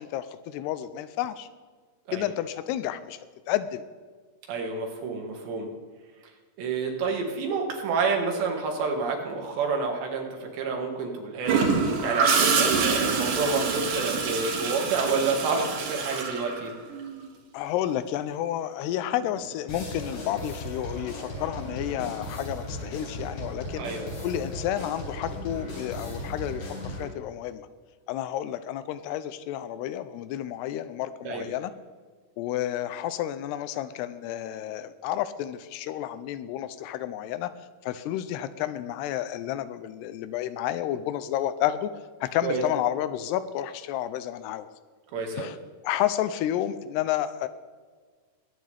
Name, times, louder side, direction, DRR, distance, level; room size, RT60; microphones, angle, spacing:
voice 1, 0.0-1.5 2.1-3.8 17.5-23.9 24.2-27.7 28.1-31.7 32.4-37.5 37.8-41.9 42.2-44.7 45.3-45.6 45.8-47.5, left 12 dB, 85° left, 13 dB, 2.6 m, -31 dB
voice 2, 4.5-5.7 6.6-16.7 23.8-24.0 31.3-31.5 42.4-42.6 45.1-45.5, right 4 dB, 85° right, 1 dB, 4.1 m, -29 dB
Gurgling / Toilet flush, 11.5-17.2 19.2-19.4, right 5 dB, 55° right, 2.7 m, -26 dB
sound 1, 19.7-27.1, left 1 dB, 55° left, 5.6 m, -36 dB
21.5 x 9.2 x 3.4 m, 1.5 s
omnidirectional pair, 4.8 m